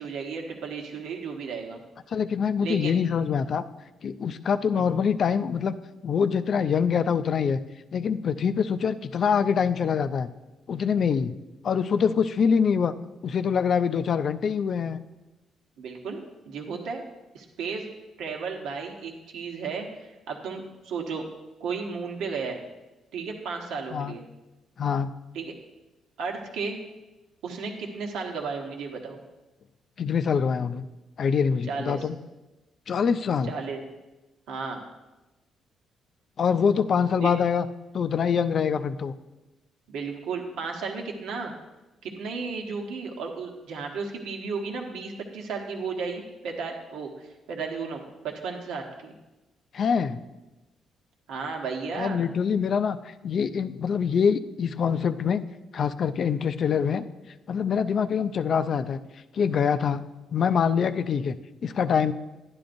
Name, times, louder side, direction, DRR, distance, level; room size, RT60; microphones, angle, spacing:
voice 1, 0.0-1.8 2.6-3.0 4.7-4.8 15.8-17.0 17.3-17.9 18.2-21.2 21.6-22.6 23.1-24.2 25.3-25.5 26.2-26.8 27.4-29.2 31.7-32.1 33.5-33.8 34.5-34.8 37.1-37.3 39.9-41.5 42.0-49.1 51.3-52.3, right 5 dB, 85° right, 1 dB, 1.2 m, -34 dB
voice 2, 2.1-3.6 4.0-5.8 6.0-7.6 7.9-10.3 10.7-11.4 11.6-12.9 13.2-15.0 23.9-24.2 24.8-25.1 30.0-30.8 31.2-32.2 32.9-33.5 36.4-37.7 37.9-39.1 49.7-50.2 52.0-55.4 55.7-57.0 57.5-59.0 59.3-60.1 60.3-61.4 61.6-62.1, left 6 dB, 55° left, 11 dB, 0.4 m, -24 dB
11.5 x 10.5 x 2.6 m, 1.1 s
cardioid pair, 90°, 0 cm